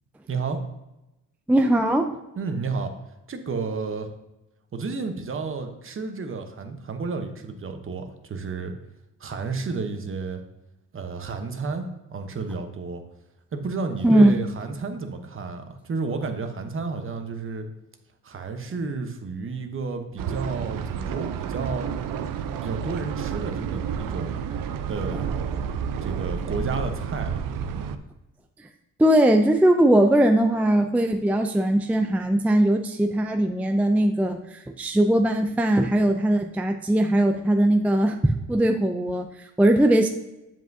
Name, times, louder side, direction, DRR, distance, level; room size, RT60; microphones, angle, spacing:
voice 1, 0.3-0.6 2.4-2.9 3.3-4.1 4.7-8.7 9.2-10.4 10.9-13.0 13.5-17.7 18.2-21.8 22.6-24.4 24.9-25.3 26.0-27.4, right 4 dB, 40° right, 6 dB, 1.0 m, -31 dB
voice 2, 1.5-2.1 14.0-14.3 29.0-40.1, right 1 dB, 5° right, 5 dB, 0.4 m, -20 dB
sound 1, 20.2-28.0, right 7 dB, 85° right, 0.6 m, -30 dB
7.8 x 7.4 x 2.7 m, 0.96 s
cardioid pair, 105°, 32 cm